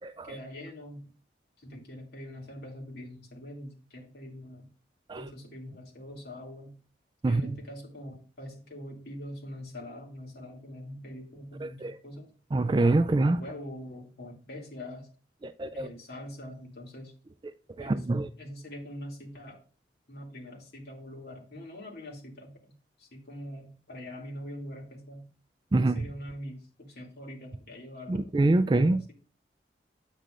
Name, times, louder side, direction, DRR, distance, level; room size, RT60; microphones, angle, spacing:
voice 1, 0.2-1.1 1.6-4.7 5.2-6.8 7.2-12.3 13.2-15.1 15.7-17.1 17.8-18.1 18.4-19.6 20.1-25.2 25.8-29.1, left 1 dB, 65° left, 2.5 m, -43 dB
voice 2, 7.2-7.5 11.6-12.0 12.5-13.4 15.4-15.9 17.8-18.3 25.7-26.1 28.1-29.0, right 2 dB, 25° right, 0.3 m, -25 dB
9.1 x 8.3 x 2.5 m
head